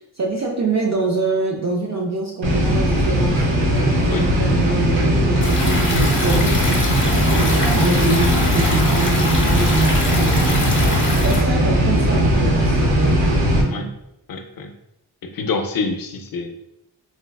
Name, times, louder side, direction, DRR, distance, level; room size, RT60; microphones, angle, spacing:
voice 1, 0.2-3.5 4.0-6.6 7.1-10.5 11.1-13.2 13.6-13.8, right 3 dB, 40° right, -1 dB, 0.4 m, -24 dB
sound 1, 2.4-13.6, equal, 90° right, 0.8 m, -18 dB
sound 2, 3.3-9.6 9.9-10.1, right 1 dB, 60° right, 1.0 m, -34 dB
Stream, 5.4-11.4, left 2 dB, 25° left, 0.8 m, -25 dB
voice 2, 14.3-14.7 15.2-16.5, left 4 dB, 55° left, 5 dB, 0.5 m, -26 dB
4.3 x 2.2 x 2.2 m, 0.85 s
wide cardioid pair, 100°, 43 cm